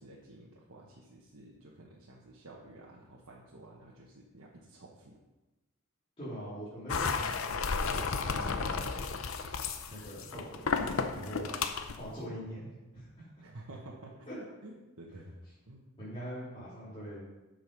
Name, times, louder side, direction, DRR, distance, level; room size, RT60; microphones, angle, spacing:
voice 1, 0.0-5.2 6.7-6.8 12.3-12.4 13.4-15.4 15.7-15.8, right 1 dB, 85° right, -4 dB, 1.2 m, -51 dB
voice 2, 6.2-9.1 9.9-11.6 12.0-13.1 14.3-14.4 16.0-17.2, equal, 25° left, -12 dB, 3.0 m, -43 dB
sound 1, 6.9-12.0, left 5 dB, 70° left, 0.6 m, -33 dB
7.9 x 6.5 x 5.3 m, 1.1 s
head